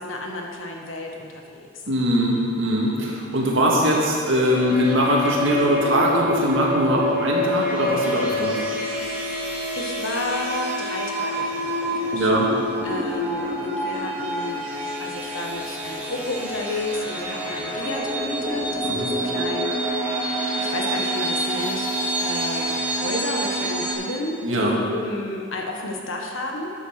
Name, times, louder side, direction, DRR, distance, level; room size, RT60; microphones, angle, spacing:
voice 1, 0.0-1.8 9.7-12.3 12.8-14.6 15.0-19.7 20.6-21.9 22.2-26.7, left 2 dB, 75° left, 1 dB, 1.4 m, -31 dB
voice 2, 1.9-8.6 12.1-12.5 18.9-19.1 24.4-24.8, equal, 65° right, -3 dB, 2.1 m, -21 dB
sound 1, 4.5-23.9, equal, 10° right, 2.4 m, -27 dB
11.5 x 7.0 x 6.0 m, 2.2 s
head